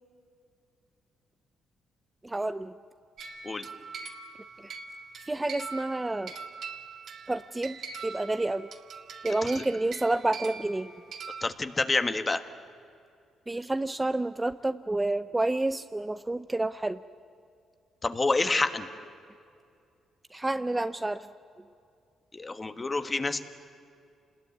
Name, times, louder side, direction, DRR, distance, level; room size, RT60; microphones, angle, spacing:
voice 1, 2.2-2.7 5.3-6.3 7.3-8.7 9.2-10.9 13.5-17.0 20.3-21.3, right 2 dB, 15° right, 11 dB, 0.6 m, -29 dB
sound 1, 3.2-11.5, right 5 dB, 60° right, 1.9 m, -42 dB
voice 2, 11.4-12.4 18.0-18.9 22.3-23.4, left 3 dB, 25° left, 9 dB, 1.5 m, -28 dB
28.0 x 20.5 x 9.5 m, 2.4 s
cardioid pair, 90°, 0 cm